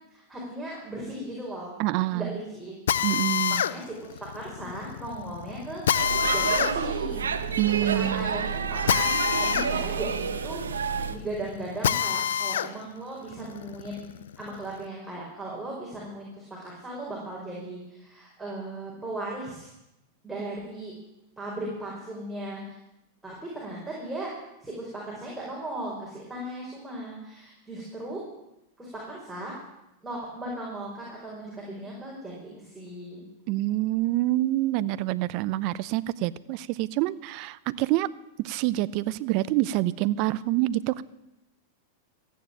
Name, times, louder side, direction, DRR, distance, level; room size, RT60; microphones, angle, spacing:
voice 1, 0.1-1.8 2.1-2.8 3.6-5.8 6.3-7.3 7.9-9.1 9.4-10.1 10.4-19.7 20.2-20.9 21.4-22.8 23.2-24.3 24.6-28.2 28.8-29.5 30.0-33.2, right 1 dB, 10° right, -4 dB, 5.3 m, -37 dB
voice 2, 1.8-2.4 3.0-3.6 7.6-8.4 33.5-38.1 38.4-41.0, right 16 dB, 50° right, 18 dB, 0.7 m, -26 dB
Drill, 2.9-12.7 13.2-14.8, left 9 dB, 80° left, 0.6 m, -28 dB
Speech / Shout / Subway metro underground, 5.9-11.2, right 6 dB, 90° right, 1.0 m, -29 dB
14.5 x 9.4 x 8.9 m, 0.89 s
hypercardioid pair, 105°, 0 cm